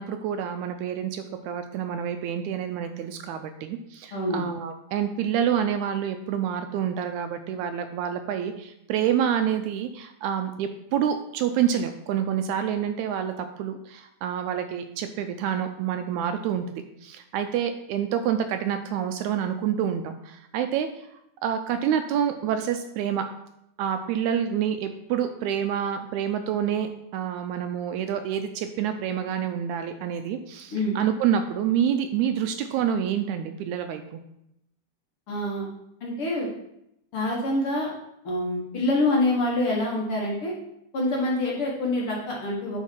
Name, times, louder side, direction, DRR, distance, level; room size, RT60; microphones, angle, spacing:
voice 1, 0.0-16.7 17.0-20.9 21.4-23.3 23.8-34.2, right 9 dB, 80° right, 7 dB, 1.8 m, -27 dB
voice 2, 4.1-4.4 30.7-31.0 35.3-35.7 36.0-36.5 37.1-37.9 38.2-40.5 40.9-42.8, left 1 dB, 55° left, -3 dB, 1.9 m, -26 dB
10.5 x 4.0 x 4.5 m, 0.81 s
omnidirectional pair, 3.6 m